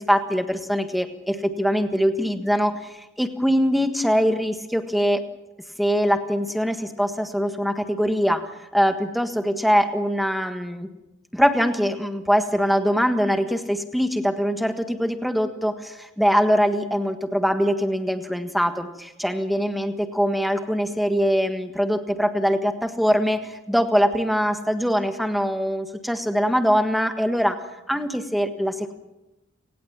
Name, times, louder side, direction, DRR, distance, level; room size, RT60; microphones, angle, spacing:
voice 1, 0.0-5.2 5.8-10.9 11.3-27.6 27.9-28.9, equal, ahead, 7 dB, 1.5 m, -23 dB
29.5 x 18.5 x 7.4 m, 1.0 s
head